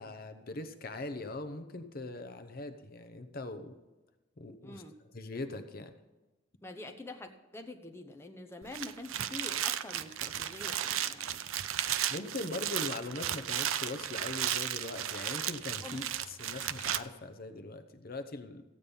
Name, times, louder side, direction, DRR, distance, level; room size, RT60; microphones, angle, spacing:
voice 1, 0.0-3.7 4.4-4.8 5.1-5.9 12.1-18.6, left 2 dB, 45° left, 9 dB, 0.8 m, -41 dB
voice 2, 4.6-4.9 6.6-11.4 12.4-12.6 15.8-16.0, left 2 dB, 10° left, 4 dB, 0.8 m, -46 dB
sound 1, 8.6-17.0, right 11 dB, 75° right, 0.5 m, -34 dB
14.5 x 8.6 x 5.4 m, 1.1 s
head